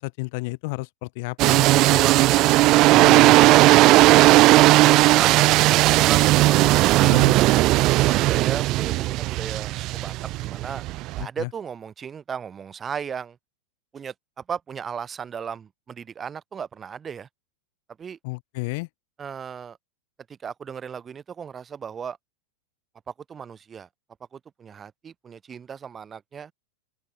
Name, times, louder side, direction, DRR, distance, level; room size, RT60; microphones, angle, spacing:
voice 1, 0.0-2.0 2.9-3.3 7.0-7.3 11.2-11.5 18.2-18.9, left 27 dB, 50° left, 5.4 m, -32 dB
sound 1, 1.4-11.2, right 18 dB, 40° right, 0.7 m, -17 dB
voice 2, 1.9-3.6 4.2-6.5 6.8-7.3 7.8-10.1 10.4-10.8 11.2-13.4 13.9-17.3 18.0-18.2 19.2-19.8 20.4-22.2 23.3-23.9 24.3-26.5, right 7 dB, 20° right, 7.1 m, -36 dB
open air
figure-of-eight pair, 90°, 0 cm